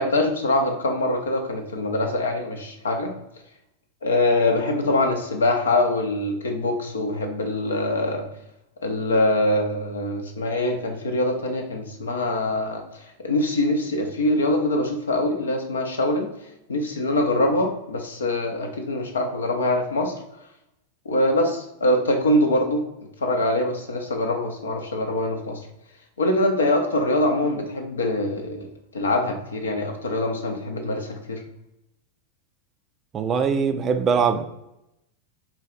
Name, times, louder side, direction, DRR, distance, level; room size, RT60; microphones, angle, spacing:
voice 1, 0.0-3.1 4.0-8.3 8.8-12.8 13.2-16.3 16.7-20.1 21.1-22.8 23.2-25.6 26.2-31.4, left 1 dB, 70° left, 0.6 m, -23 dB
voice 2, 33.1-34.4, right 6 dB, 25° right, 0.3 m, -22 dB
4.3 x 2.3 x 3.8 m
figure-of-eight pair, 90°, 0 cm